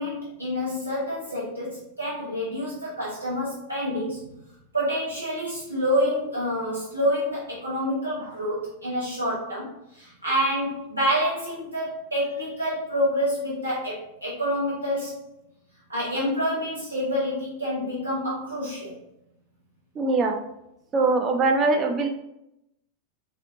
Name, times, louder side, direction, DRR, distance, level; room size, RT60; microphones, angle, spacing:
voice 1, 0.0-4.3 4.7-15.3 15.9-18.9, equal, 80° right, -7 dB, 0.9 m, -27 dB
voice 2, 20.0-20.4 20.9-22.1, right 3 dB, 25° right, 3 dB, 0.6 m, -22 dB
4.2 x 2.6 x 2.7 m, 0.83 s
figure-of-eight pair, 90°, 0 cm